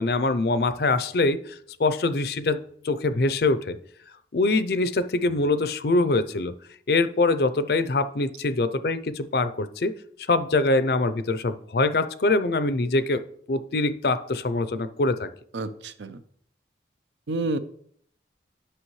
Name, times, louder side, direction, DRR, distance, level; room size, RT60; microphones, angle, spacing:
voice 1, 0.0-3.8 4.3-6.5 6.9-9.9 10.3-13.2 13.5-15.3, left 2 dB, 55° left, 13 dB, 0.5 m, -24 dB
voice 2, 15.5-16.2 17.3-17.6, right 2 dB, 75° right, 12 dB, 0.6 m, -29 dB
9.9 x 6.1 x 3.2 m, 0.63 s
head